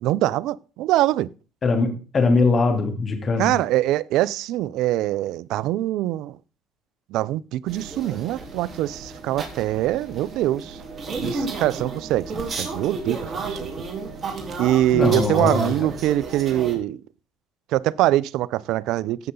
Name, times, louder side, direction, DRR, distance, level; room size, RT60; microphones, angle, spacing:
voice 1, 0.0-1.3 3.4-6.4 7.1-10.8 11.2-13.2 13.5-13.6 14.6-17.0 17.7-19.3, right 14 dB, 70° right, 0.5 m, -23 dB
voice 2, 1.6-3.6 14.9-15.9, left 3 dB, 35° left, 3.0 m, -21 dB
sound 1, 7.7-16.8, right 3 dB, 35° right, 3.4 m, -32 dB
15.5 x 6.7 x 3.8 m
supercardioid pair, 85°, 0 cm